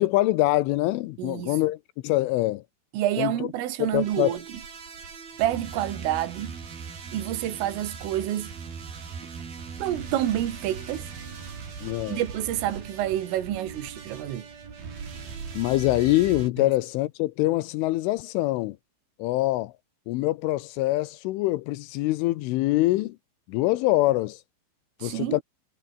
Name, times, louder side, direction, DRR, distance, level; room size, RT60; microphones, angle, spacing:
voice 1, 0.0-2.6 3.2-3.5 3.8-4.4 11.8-12.2 15.5-18.8 19.2-19.7 20.1-23.2 23.5-24.4 25.0-25.4, left 18 dB, 80° left, 3.2 m, -24 dB
voice 2, 1.2-1.6 2.9-4.4 5.4-6.6 7.1-8.5 9.8-11.1 12.1-14.5 16.6-16.7 25.0-25.4, right 12 dB, 75° right, 4.8 m, -28 dB
sound 1, 3.9-16.5, right 6 dB, 50° right, 6.2 m, -40 dB
omnidirectional pair, 5.9 m